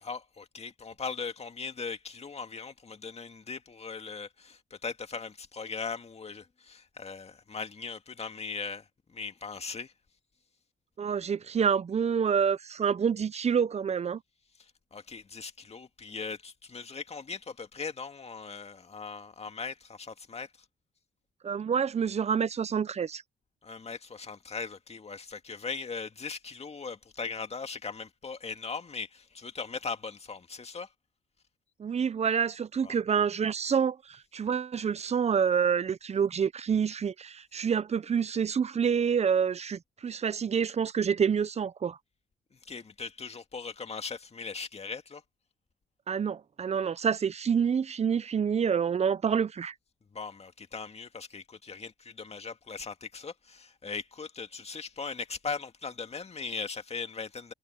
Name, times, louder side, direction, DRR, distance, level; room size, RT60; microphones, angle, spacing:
voice 1, 0.0-9.9 14.9-20.5 23.6-30.9 32.8-32.9 42.6-45.2 50.1-57.5, left 5 dB, 30° left, 2.1 m, -39 dB
voice 2, 11.0-14.2 21.4-23.2 31.8-42.0 46.1-49.7, right 7 dB, 35° right, 0.7 m, -27 dB
cardioid pair, 90°, 20 cm